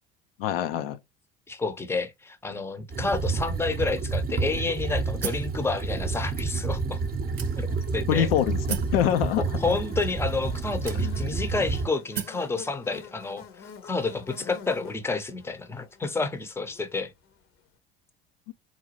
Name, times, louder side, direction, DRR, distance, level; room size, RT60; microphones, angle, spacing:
voice 1, 0.4-1.0 8.1-8.6 8.9-9.4 10.9-11.2 18.5-18.6, left 10 dB, 70° left, 0.5 m, -24 dB
voice 2, 1.5-7.0 7.6-7.7 7.9-8.3 9.4-17.1, left 3 dB, 10° left, 0.7 m, -30 dB
sound 1, 2.9-11.9, right 4 dB, 30° right, 0.8 m, -29 dB
sound 2, 5.2-5.6 6.3-6.4 7.4-7.9 8.7-9.0 10.0-10.1 10.9-11.4 12.1-12.5, right 8 dB, 80° right, 0.7 m, -34 dB
Buzz, 7.0-17.4, left 7 dB, 45° left, 0.8 m, -48 dB
3.9 x 2.3 x 3.0 m
figure-of-eight pair, 65°, 31 cm